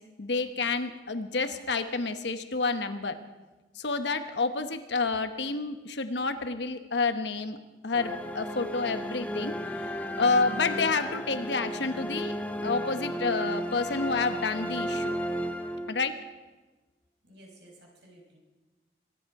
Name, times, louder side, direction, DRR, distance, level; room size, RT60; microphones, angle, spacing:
voice 1, 0.2-3.2 3.7-7.6 7.8-12.3 12.6-15.2 15.9-16.1, left 4 dB, 85° left, 9 dB, 1.1 m, -29 dB
sound 1, 7.9-16.3, equal, 10° left, 0.6 m, -34 dB
voice 2, 17.2-18.4, right 1 dB, 85° right, -1 dB, 4.9 m, -54 dB
24.0 x 10.5 x 4.8 m, 1.2 s
head